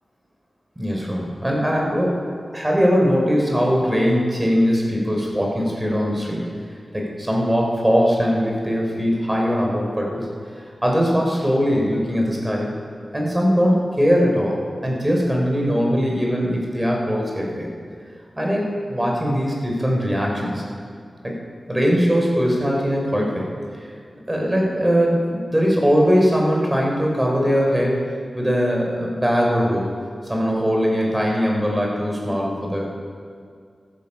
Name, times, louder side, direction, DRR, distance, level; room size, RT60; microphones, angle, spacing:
voice 1, 0.8-2.2 2.5-6.4 6.9-10.2 10.8-12.7 13.1-14.6 14.8-17.7 18.4-20.6 21.2-21.4 21.7-23.5 24.3-28.0 28.3-29.8 30.3-32.9, equal, 15° right, -1 dB, 3.8 m, -20 dB
14.0 x 13.5 x 5.6 m, 2.2 s
wide cardioid pair, 80°, 0 cm